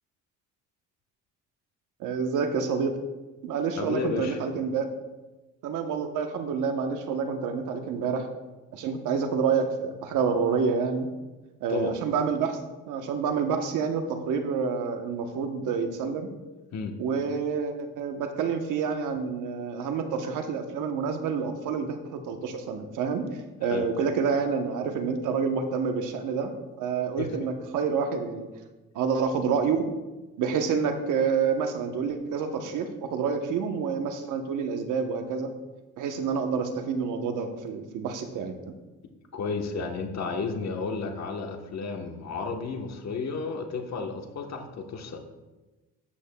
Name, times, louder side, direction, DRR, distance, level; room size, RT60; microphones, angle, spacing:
voice 1, 2.0-3.0 3.4-4.9 5.6-8.3 8.7-11.1 11.6-12.6 12.9-16.3 17.0-23.2 23.6-28.5 28.9-29.9 30.4-35.5 36.0-38.7, right 6 dB, 90° right, 6 dB, 1.1 m, -28 dB
voice 2, 3.8-4.4 11.7-11.9 16.7-16.9 23.6-23.9 27.2-27.3 39.3-45.2, left 4 dB, 60° left, 4 dB, 1.2 m, -32 dB
13.0 x 8.4 x 2.3 m, 1.1 s
cardioid pair, 90°, 30 cm